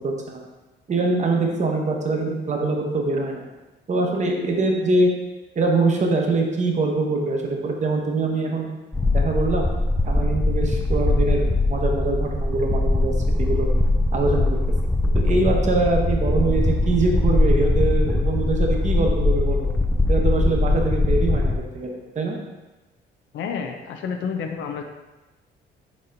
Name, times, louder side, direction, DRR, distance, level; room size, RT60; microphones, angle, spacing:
voice 1, 0.0-0.4 0.9-3.4 3.9-5.1 5.6-8.7 9.1-9.7 10.1-13.1 13.4-13.7 14.1-14.6 15.0-19.7 20.1-22.4, right 3 dB, 35° right, 1 dB, 0.8 m, -23 dB
sound 1, 8.9-21.6, left 2 dB, 5° left, 0.3 m, -21 dB
voice 2, 23.3-24.8, left 6 dB, 75° left, 5 dB, 0.5 m, -29 dB
4.2 x 4.1 x 2.5 m, 1.1 s
cardioid pair, 90°, 20 cm